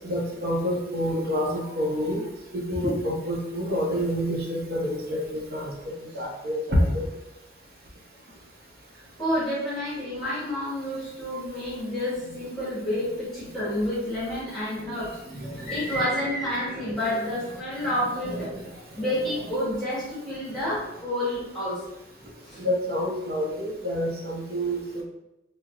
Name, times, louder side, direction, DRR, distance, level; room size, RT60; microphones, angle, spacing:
voice 1, 0.0-2.2 2.5-7.0 14.8-15.0 15.3-16.0 16.9-17.0 18.2-18.6 22.6-25.0, equal, 55° right, -2 dB, 0.8 m, -28 dB
voice 2, 9.2-15.2 15.6-18.5 18.9-21.8 22.4-22.6, left 1 dB, ahead, -11 dB, 1.1 m, -29 dB
4.4 x 2.1 x 2.4 m, 0.92 s
head